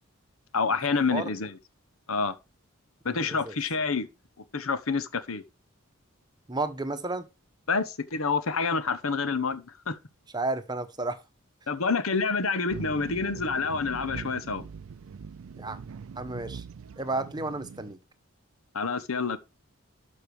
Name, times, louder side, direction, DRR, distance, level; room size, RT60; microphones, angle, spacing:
voice 1, 0.5-1.6 2.1-2.3 3.0-4.1 4.5-5.4 7.7-10.0 11.7-14.6 18.7-19.4, left 4 dB, 80° left, 1.0 m, -28 dB
voice 2, 3.1-3.6 6.5-7.3 10.3-11.2 15.6-15.8 16.2-16.6 17.0-18.0, right 2 dB, 20° right, 1.0 m, -32 dB
sound 1, 12.7-17.9, right 5 dB, 75° right, 0.4 m, -42 dB
12.0 x 5.5 x 4.8 m
head